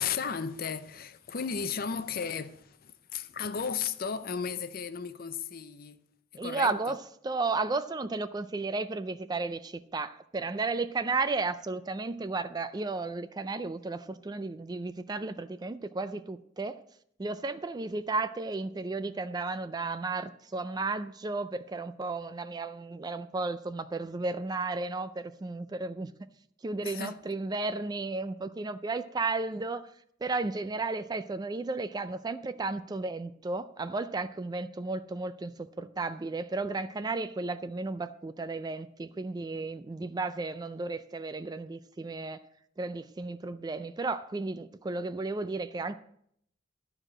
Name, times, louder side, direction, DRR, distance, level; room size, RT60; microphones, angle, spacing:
voice 1, 0.0-6.0 6.3-7.0 26.8-27.2, left 6 dB, 50° left, 0.6 m, -35 dB
voice 2, 6.4-16.8 17.2-26.1 26.6-29.9 30.2-42.4 42.8-46.0, right 3 dB, 20° right, 0.4 m, -33 dB
12.0 x 4.9 x 7.5 m
head